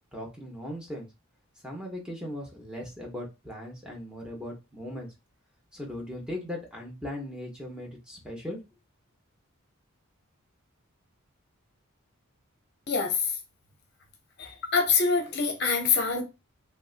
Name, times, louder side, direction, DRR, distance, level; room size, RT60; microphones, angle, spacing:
voice 1, 0.1-1.1 1.6-5.1 5.7-8.6, left 1 dB, 5° right, 0.9 m, -38 dB
voice 2, 12.9-13.3 14.4-16.2, left 5 dB, 50° left, 0.7 m, -25 dB
3.2 x 2.5 x 2.4 m
head